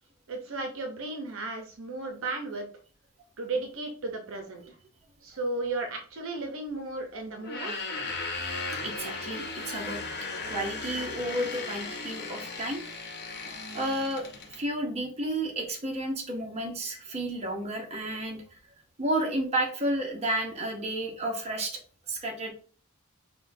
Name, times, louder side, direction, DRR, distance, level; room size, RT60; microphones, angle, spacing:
voice 1, 0.3-2.7 3.4-4.6 5.2-7.9, right 2 dB, 65° right, 3 dB, 0.7 m, -34 dB
sound 1, 7.4-14.6, left 3 dB, 50° left, 0.8 m, -36 dB
voice 2, 8.8-10.0 10.5-13.0 13.7-18.6 19.0-21.8 22.1-22.5, right 1 dB, 30° right, 1 dB, 0.8 m, -32 dB
6.0 x 2.2 x 2.6 m, 0.42 s
head